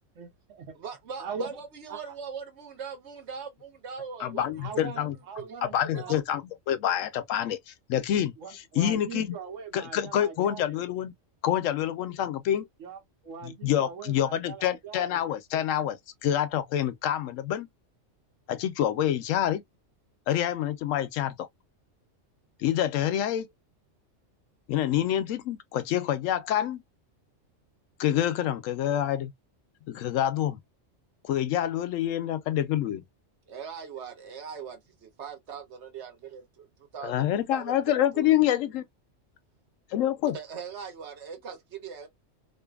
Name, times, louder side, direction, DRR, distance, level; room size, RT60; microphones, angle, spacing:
voice 1, 0.1-0.7 1.2-1.5 1.9-2.1 4.4-6.2 8.4-10.8 12.8-15.2, right 5 dB, 85° right, 1.2 m, -41 dB
voice 2, 0.7-5.1 5.4-6.2 33.5-36.4 36.8-38.3 40.3-42.1, right 6 dB, 65° right, 1.1 m, -41 dB
voice 3, 4.2-5.2 5.6-6.4 6.7-9.3 9.7-11.1 11.4-12.7 13.4-17.7 18.5-19.6 20.3-21.4 22.6-23.5 24.7-26.8 28.0-29.3 29.9-30.6 31.2-33.0 37.0-38.8 39.9-40.4, left 11 dB, 90° left, 0.9 m, -27 dB
2.6 x 2.5 x 2.2 m
omnidirectional pair, 1.3 m